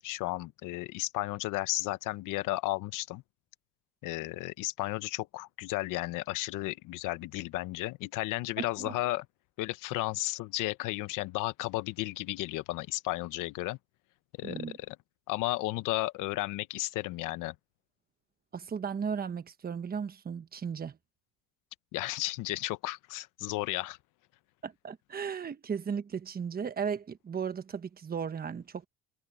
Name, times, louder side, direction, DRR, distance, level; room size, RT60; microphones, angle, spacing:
voice 1, 0.0-3.2 4.0-9.2 9.6-13.8 14.4-15.0 15.3-17.5 21.9-24.0, left 18 dB, 80° left, 1.0 m, -33 dB
voice 2, 8.6-9.0 14.4-14.8 18.5-21.0 24.6-28.9, right 6 dB, 30° right, 1.2 m, -36 dB
cardioid pair, 115°, 31 cm